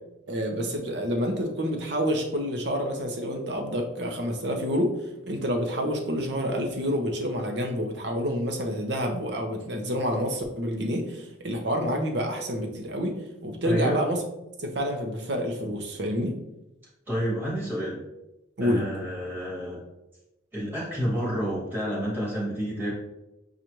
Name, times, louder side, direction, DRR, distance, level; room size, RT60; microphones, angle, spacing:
voice 1, 0.3-5.0 5.2-14.2 14.6-16.4 18.6-18.9, equal, 65° right, 3 dB, 0.7 m, -28 dB
voice 2, 13.6-14.0 17.1-18.0 18.6-19.8 20.5-22.9, equal, 10° right, -6 dB, 1.2 m, -29 dB
6.4 x 2.5 x 2.9 m, 0.94 s
head